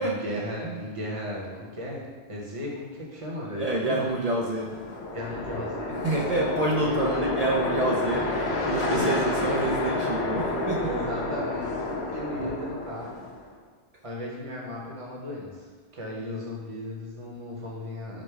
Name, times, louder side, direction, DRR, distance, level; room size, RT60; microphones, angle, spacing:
voice 1, 0.0-4.1 5.1-6.0 6.8-7.3 8.6-9.3 10.6-13.2 14.0-15.7 15.9-18.2, left 1 dB, 35° right, -3 dB, 0.9 m, -36 dB
voice 2, 3.6-4.7 5.9-11.1, right 2 dB, 55° right, -3 dB, 0.4 m, -27 dB
sound 1, 4.5-13.5, left 2 dB, 90° left, 1.0 m, -30 dB
5.1 x 2.1 x 4.5 m, 1.5 s
omnidirectional pair, 1.1 m